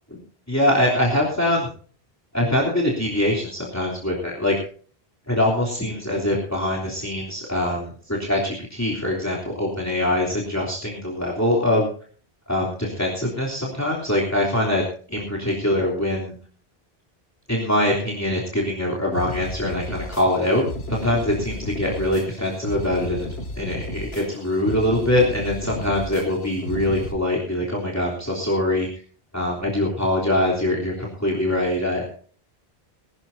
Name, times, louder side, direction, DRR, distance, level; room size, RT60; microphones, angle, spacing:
voice 1, 0.5-1.7 2.3-4.6 5.3-11.9 12.5-16.4 17.5-23.3 23.5-28.9 29.3-32.1, left 1 dB, 15° left, -3 dB, 3.3 m, -23 dB
sound 1, 19.1-27.1, left 1 dB, 75° left, 2.4 m, -33 dB
20.5 x 13.5 x 2.7 m, 0.43 s
omnidirectional pair, 1.1 m